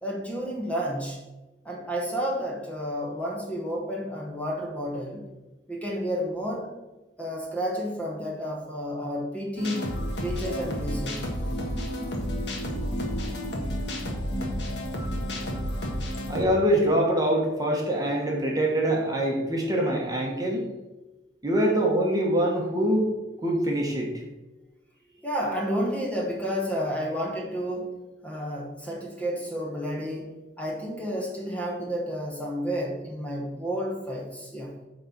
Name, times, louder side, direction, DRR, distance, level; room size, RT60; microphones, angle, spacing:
voice 1, 0.0-1.2 1.6-5.3 5.7-6.7 7.2-9.9 10.2-11.3 25.2-28.0 28.2-34.7, equal, 10° left, -2 dB, 1.3 m, -31 dB
sound 1, 9.6-16.4, equal, 60° left, 1.7 m, -31 dB
voice 2, 16.3-20.6 21.4-23.1 23.4-24.1, right 1 dB, 20° right, -1 dB, 1.3 m, -24 dB
8.9 x 4.0 x 6.0 m, 1.1 s
head